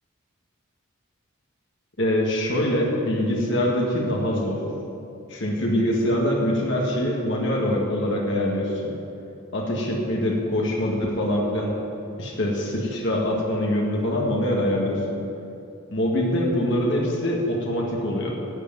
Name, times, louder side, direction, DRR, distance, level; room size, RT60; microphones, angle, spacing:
voice 1, 2.0-4.6 5.3-8.9 9.5-11.7 12.2-15.2 15.9-18.4, left 1 dB, 55° left, -2 dB, 1.9 m, -24 dB
11.5 x 7.7 x 9.1 m, 2.6 s
head